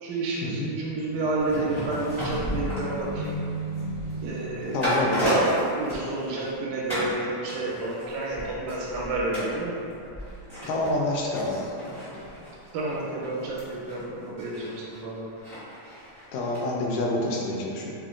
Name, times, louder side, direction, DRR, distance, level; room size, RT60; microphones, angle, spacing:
voice 1, 0.0-3.4 4.2-4.8 5.2-9.8 12.7-15.3, right 2 dB, 90° right, -4 dB, 2.1 m, -30 dB
sound 1, 1.1-4.4, left 1 dB, 65° right, 1.0 m, -39 dB
sound 2, 1.4-6.6 6.9-7.2 7.5-16.6 16.9-17.0, equal, 40° left, 0.5 m, -34 dB
Keyboard (musical), 3.1-5.0, right 3 dB, 35° right, 0.5 m, -34 dB
voice 2, 4.7-5.3 10.7-11.6 16.3-17.9, left 1 dB, 80° left, -2 dB, 1.9 m, -27 dB
5.0 x 2.1 x 2.4 m, 2.6 s
omnidirectional pair, 3.4 m